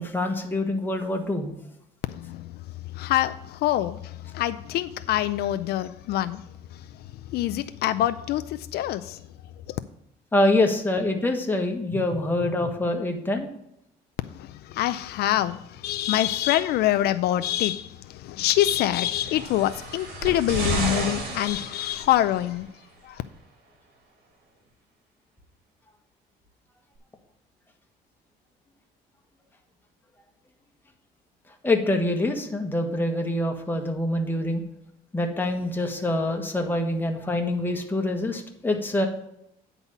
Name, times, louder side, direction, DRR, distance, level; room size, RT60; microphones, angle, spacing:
voice 1, 0.0-1.5 10.3-13.5 31.6-34.6 35.1-39.1, left 1 dB, 10° left, 1.4 m, -25 dB
voice 2, 2.1-2.5 2.9-6.4 6.7-7.0 7.3-9.2 9.7-9.8 14.3-22.7 23.0-23.2, left 13 dB, 70° left, 0.4 m, -25 dB
sound 1, 19.0-22.4 23.3-23.4, right 2 dB, 70° right, 2.7 m, -31 dB
9.4 x 4.1 x 7.0 m
cardioid pair, 110°, 17 cm